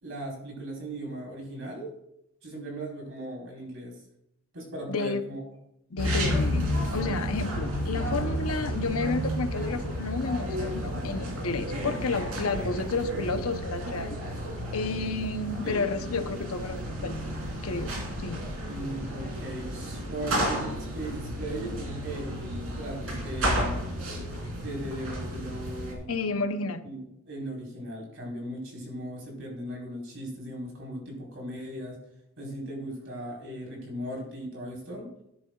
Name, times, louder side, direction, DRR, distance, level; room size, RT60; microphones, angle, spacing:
voice 1, 0.0-1.9 2.4-4.0 4.5-5.4 15.6-15.9 18.7-22.4 22.8-23.9 24.6-26.1 26.8-32.0 32.4-35.1, right 1 dB, 65° right, -1 dB, 4.3 m, -38 dB
voice 2, 4.9-5.2 5.9-14.2 14.7-17.2 17.6-17.9 18.2-18.4 26.1-26.8, left 3 dB, 80° left, 9 dB, 0.8 m, -31 dB
sound 1, 6.0-25.9, equal, 85° right, 3.1 m, -32 dB
13.0 x 10.0 x 2.4 m, 0.79 s
head